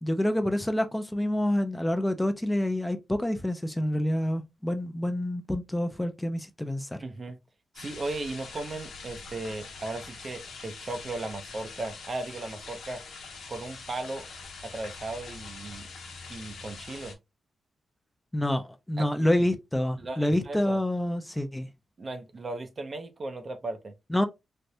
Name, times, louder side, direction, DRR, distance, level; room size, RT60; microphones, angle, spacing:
voice 1, 0.0-7.0 18.3-21.7 24.1-24.2, left 1 dB, 10° left, 0.5 m, -27 dB
voice 2, 7.0-7.4 7.8-13.0 13.5-14.3 14.6-15.9 16.3-17.2 19.0-19.3 20.0-20.8 22.0-23.9, right 2 dB, 45° right, 0.6 m, -36 dB
sound 1, 7.7-17.1, left 4 dB, 85° left, 0.9 m, -44 dB
3.3 x 2.5 x 2.7 m
cardioid pair, 60°, 0 cm